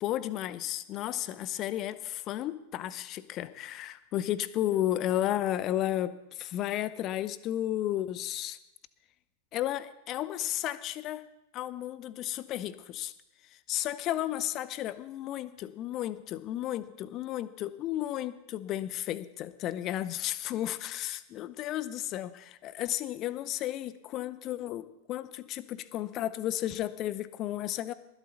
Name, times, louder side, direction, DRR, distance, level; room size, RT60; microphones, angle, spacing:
voice 1, 0.0-8.6 9.5-11.3 11.5-13.1 13.4-27.9, left 13 dB, 35° left, 16 dB, 0.7 m, -33 dB
20.0 x 11.5 x 4.1 m, 0.91 s
figure-of-eight pair, 90°, 0 cm